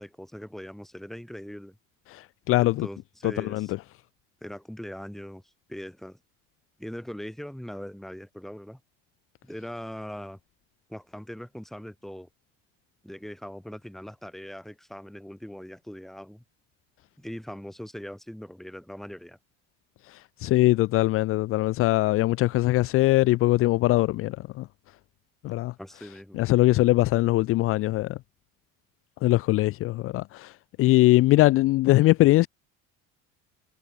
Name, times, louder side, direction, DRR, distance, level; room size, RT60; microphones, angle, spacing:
voice 1, 0.0-1.8 2.6-3.7 4.4-5.4 5.7-6.2 6.8-8.8 9.4-10.4 10.9-12.3 13.0-16.4 17.2-19.4 25.8-26.4, equal, ahead, 2.2 m, -40 dB
voice 2, 2.1-2.9 3.2-3.8 20.1-24.7 25.4-25.7 26.3-28.2 29.2-30.5 30.8-32.5, left 18 dB, 45° left, 0.6 m, -22 dB
cardioid pair, 150°, 30 cm